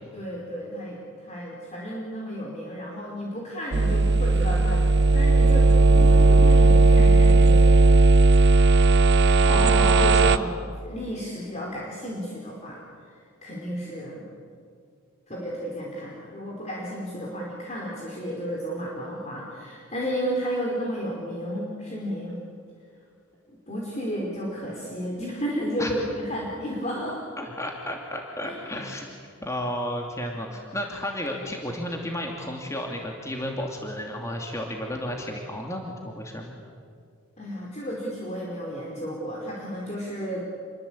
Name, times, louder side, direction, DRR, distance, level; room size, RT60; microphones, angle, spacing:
voice 1, 0.1-8.0 9.5-12.8 13.4-14.2 15.3-22.4 23.5-27.3 28.4-28.6 37.4-40.5, equal, 30° left, -3 dB, 4.6 m, -33 dB
sound 1, 3.7-10.4, right 3 dB, 50° right, 0.7 m, -16 dB
voice 2, 9.4-10.5 25.8-25.9 27.4-29.1 29.4-36.6, left 1 dB, 15° left, 1 dB, 2.7 m, -32 dB
29.5 x 23.5 x 8.7 m, 2.2 s
head